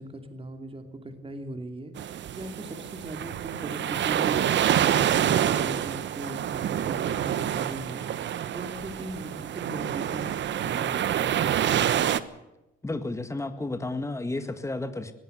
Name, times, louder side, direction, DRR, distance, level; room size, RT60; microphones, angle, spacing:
voice 1, 0.0-8.0 8.5-11.4, right 1 dB, 25° right, 7 dB, 2.8 m, -39 dB
sound 1, 2.0-12.2, right 10 dB, 65° right, 1.2 m, -27 dB
voice 2, 12.8-15.1, left 2 dB, 15° left, 9 dB, 1.9 m, -32 dB
20.5 x 16.5 x 8.0 m, 0.97 s
cardioid pair, 90°, 20 cm